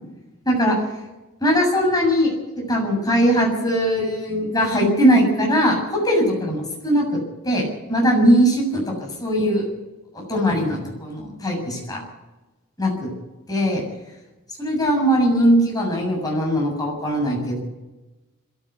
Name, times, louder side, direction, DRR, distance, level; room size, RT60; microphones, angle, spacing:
voice 1, 0.5-0.8 1.4-2.3 2.6-5.8 6.0-7.1 7.4-8.8 9.2-9.7 10.1-12.0 12.8-13.1 13.5-13.8 14.6-17.6, equal, 15° left, -1 dB, 7.4 m, -20 dB
22.0 x 14.5 x 8.3 m, 1.1 s
head